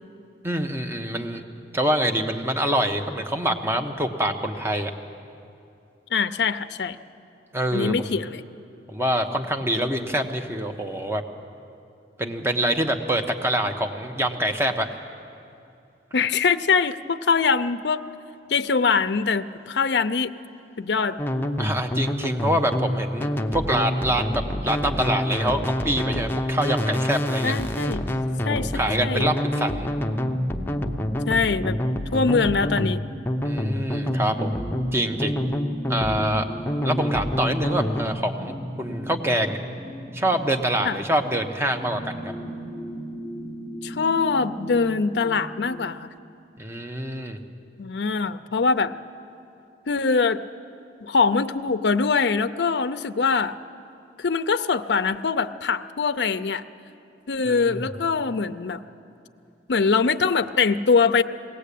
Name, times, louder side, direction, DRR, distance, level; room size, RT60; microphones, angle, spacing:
voice 1, 0.4-1.4 1.7-4.9 7.5-8.1 8.9-11.2 12.2-14.9 21.6-27.5 28.5-29.9 33.4-34.6 34.9-35.4 35.9-36.5 36.8-39.6 40.1-42.3 46.6-47.4 57.5-57.8, right 1 dB, 15° right, 5 dB, 1.1 m, -25 dB
voice 2, 6.1-7.0 7.7-8.4 16.1-18.0 18.5-20.4 20.8-21.2 27.4-28.1 28.4-29.3 31.3-31.8 32.1-33.0 40.8-41.0 43.8-46.1 47.8-48.9 49.9-50.4 51.0-53.6 54.2-56.6 57.3-58.8 59.7-61.2, left 5 dB, 70° left, 10 dB, 0.6 m, -23 dB
sound 1, 21.2-38.0, left 1 dB, 10° left, 0.8 m, -27 dB
sound 2, 30.2-45.7, equal, 50° right, 5.3 m, -37 dB
20.5 x 18.0 x 8.4 m, 2.6 s
head